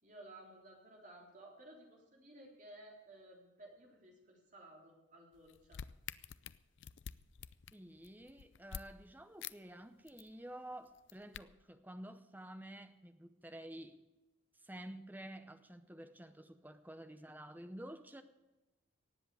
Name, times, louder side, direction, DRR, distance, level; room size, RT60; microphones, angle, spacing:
voice 1, 0.0-5.8, right 1 dB, 40° right, -1 dB, 3.5 m, -56 dB
sound 1, 5.3-8.8 9.4-9.5 9.8-10.3 10.9-11.4, left 8 dB, 60° left, 0.4 m, -48 dB
voice 2, 7.7-14.0 14.6-18.2, right 1 dB, 10° right, 9 dB, 0.7 m, -50 dB
18.5 x 7.8 x 8.3 m, 1.1 s
head